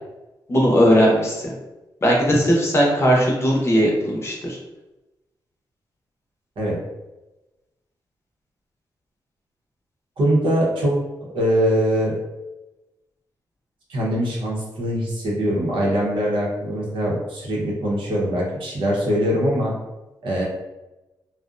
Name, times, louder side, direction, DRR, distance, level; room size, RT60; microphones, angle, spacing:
voice 1, 0.5-1.4 2.0-4.6, equal, 30° left, -3 dB, 0.6 m, -18 dB
voice 2, 10.2-11.0 11.3-12.1 13.9-19.7 20.2-20.4, equal, 85° right, -4 dB, 0.8 m, -22 dB
2.5 x 2.1 x 2.4 m, 1.0 s
wide cardioid pair, 125°, 8 cm